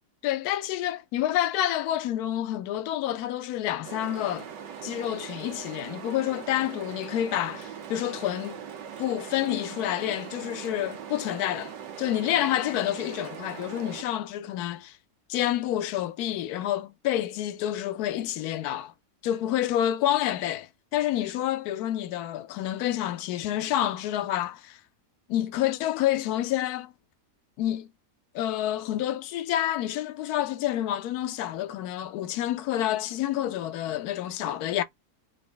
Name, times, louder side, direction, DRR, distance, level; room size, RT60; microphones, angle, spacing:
voice 1, 0.2-4.5 4.8-8.6 9.0-11.7 12.0-15.0 15.3-18.9 19.2-24.8 25.3-26.9 27.6-27.9 28.3-34.8, left 12 dB, 70° left, 1.0 m, -28 dB
sound 1, 3.8-14.0, right 8 dB, 90° right, 1.6 m, -41 dB
4.1 x 2.7 x 3.3 m
omnidirectional pair, 1.8 m